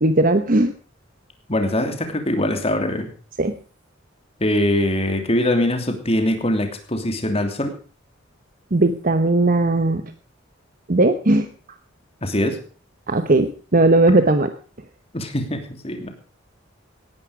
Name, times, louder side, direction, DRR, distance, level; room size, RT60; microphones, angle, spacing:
voice 1, 0.0-0.7 3.4-3.5 8.7-10.0 10.9-11.5 13.1-14.5, right 2 dB, 45° right, 8 dB, 1.0 m, -17 dB
voice 2, 1.5-3.1 4.4-7.7 12.2-12.6 15.1-16.1, left 1 dB, 30° left, 6 dB, 2.9 m, -22 dB
18.0 x 11.0 x 5.0 m, 0.39 s
head